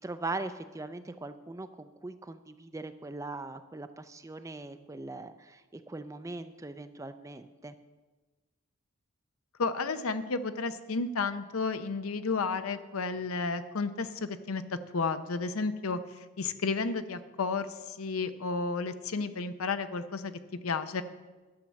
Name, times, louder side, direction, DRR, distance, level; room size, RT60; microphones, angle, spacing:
voice 1, 0.0-7.7, right 2 dB, 15° right, 10 dB, 0.4 m, -40 dB
voice 2, 9.6-21.0, left 4 dB, 85° left, 11 dB, 0.7 m, -32 dB
11.5 x 7.1 x 6.3 m, 1.2 s
head